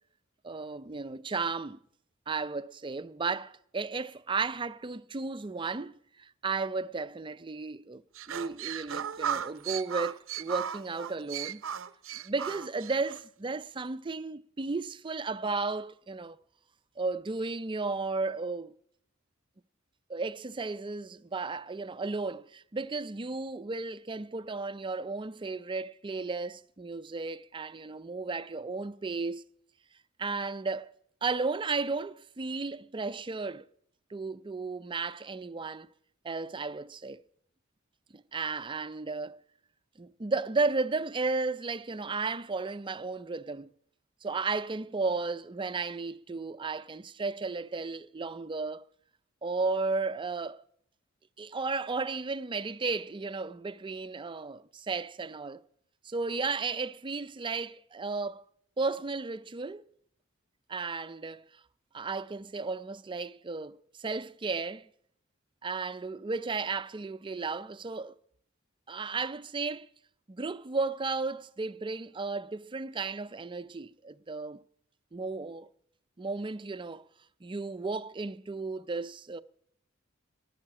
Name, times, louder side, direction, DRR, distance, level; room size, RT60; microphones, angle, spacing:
voice 1, 0.4-1.8 2.3-8.0 8.3-11.6 12.2-16.4 17.0-18.7 20.1-29.4 30.2-30.9 31.2-33.6 34.1-35.9 36.2-37.2 38.1-39.4 40.0-43.7 44.2-48.8 49.4-50.6 51.4-55.6 56.0-58.4 58.8-59.8 60.7-61.4 61.9-64.9 65.6-68.1 68.9-69.9 70.3-74.6 75.1-75.7 76.2-77.0 77.4-79.4, right 4 dB, 25° right, 0.5 m, -34 dB
sound 1, 8.1-13.2, right 9 dB, 75° right, 0.6 m, -36 dB
11.5 x 11.0 x 8.6 m
head